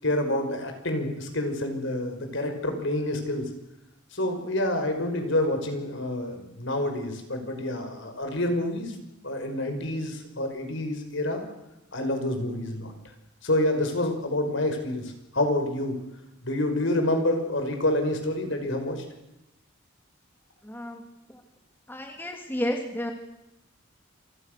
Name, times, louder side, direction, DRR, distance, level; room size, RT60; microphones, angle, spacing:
voice 1, 0.0-3.5 4.1-9.0 9.2-11.4 11.9-12.9 13.4-16.0 16.4-19.0, left 1 dB, 65° left, 6 dB, 5.4 m, -28 dB
voice 2, 20.6-21.0 21.3-21.4 21.9-23.1, left 1 dB, 10° left, 3 dB, 2.8 m, -31 dB
28.5 x 26.0 x 6.7 m, 0.89 s
head